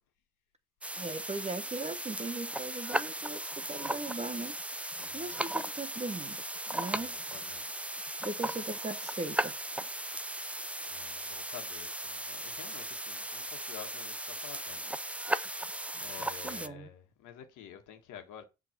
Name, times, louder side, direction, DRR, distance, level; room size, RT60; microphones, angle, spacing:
sound 1, 0.8-16.7, right 1 dB, 5° right, 0.4 m, -37 dB
voice 1, 1.0-4.5 5.1-6.4 6.7-7.2 8.2-9.5 16.4-16.9, right 2 dB, 20° right, 1.1 m, -39 dB
voice 2, 5.0-5.4 6.8-7.8 10.9-14.8 16.0-18.4, left 9 dB, 90° left, 1.7 m, -50 dB
7.5 x 3.6 x 6.0 m
cardioid pair, 90°, 30 cm